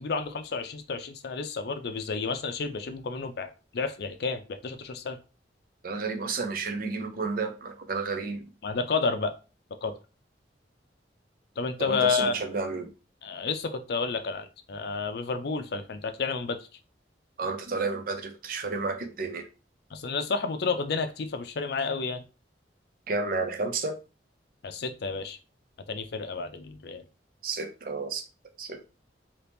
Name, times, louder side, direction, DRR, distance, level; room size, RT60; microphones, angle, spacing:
voice 1, 0.0-5.2 8.6-9.4 9.8-9.9 11.6-12.4 13.2-16.6 19.9-22.2 24.6-25.4 25.9-27.0, left 4 dB, 60° left, 0.5 m, -30 dB
voice 2, 5.8-8.5 11.8-12.9 17.4-19.5 23.1-24.0 27.4-28.2 28.6-28.9, right 4 dB, 50° right, 0.6 m, -31 dB
2.9 x 2.7 x 3.4 m
head